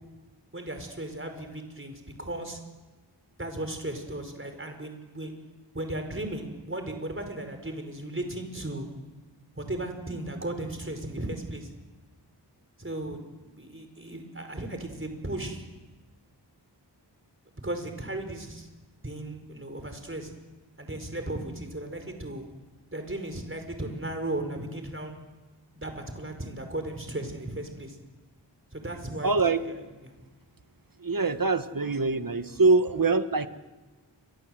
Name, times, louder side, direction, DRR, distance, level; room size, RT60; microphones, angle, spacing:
voice 1, 0.5-2.6 3.4-5.3 5.7-8.9 9.5-11.7 12.8-13.3 13.5-15.6 17.6-18.7 19.0-20.3 20.8-22.4 22.9-25.2 25.7-28.0 28.7-30.1, right 1 dB, 30° right, 6 dB, 5.0 m, -36 dB
voice 2, 29.2-29.6 31.0-33.5, right 3 dB, 50° right, 10 dB, 1.6 m, -24 dB
29.0 x 25.5 x 7.8 m, 1.2 s
wide cardioid pair, 50°, 44 cm